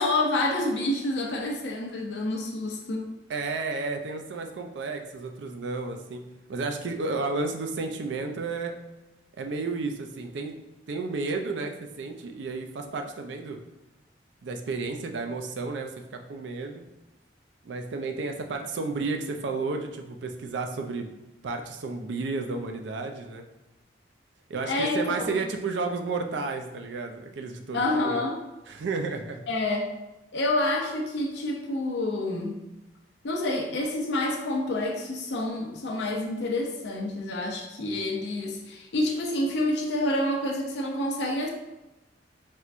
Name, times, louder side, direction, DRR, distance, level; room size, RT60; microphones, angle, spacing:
voice 1, 0.0-3.1 24.6-25.4 27.7-28.4 29.5-29.9 30.3-32.6 33.2-41.5, left 1 dB, 70° left, -1 dB, 0.5 m, -28 dB
voice 2, 3.3-6.2 6.5-8.8 9.4-10.6 10.9-13.6 14.4-16.9 17.6-21.1 21.4-23.5 24.5-28.2 28.7-29.4, right 3 dB, 80° right, 4 dB, 0.4 m, -32 dB
4.3 x 2.2 x 2.5 m, 1.0 s
head